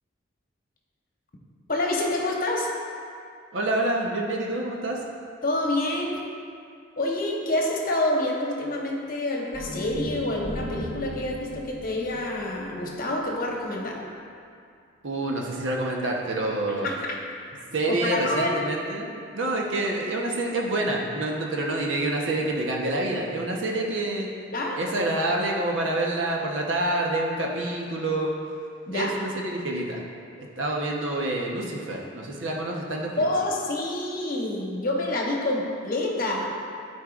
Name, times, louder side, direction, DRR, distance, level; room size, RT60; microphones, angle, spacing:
voice 1, 1.7-2.7 5.4-6.2 7.0-14.0 16.8-16.9 17.9-18.6 24.5-24.8 28.9-29.1 33.2-36.5, left 1 dB, 45° left, -2 dB, 1.0 m, -27 dB
voice 2, 3.5-5.0 15.0-16.9 17.7-24.3 24.8-28.4 28.9-30.0 30.4-33.3, right 2 dB, 75° right, -1 dB, 1.0 m, -27 dB
sound 1, 9.5-13.8, left 1 dB, 45° right, 1.0 m, -37 dB
13.0 x 4.5 x 2.5 m, 2.4 s
head